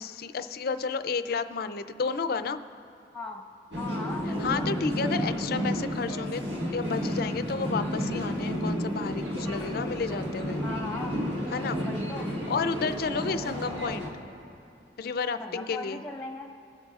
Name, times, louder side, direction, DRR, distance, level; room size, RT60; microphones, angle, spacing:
voice 1, 0.0-2.6 4.4-6.4 6.7-10.6 11.5-11.8 12.5-14.1 15.0-16.0, left 5 dB, 60° left, 11 dB, 0.4 m, -31 dB
sound 1, 3.7-14.1, equal, 75° right, 1.8 m, -31 dB
voice 2, 3.8-4.6 10.6-11.2 11.8-12.3 15.4-16.5, left 3 dB, 5° left, 0 dB, 0.9 m, -38 dB
23.0 x 10.5 x 2.4 m, 2.5 s
head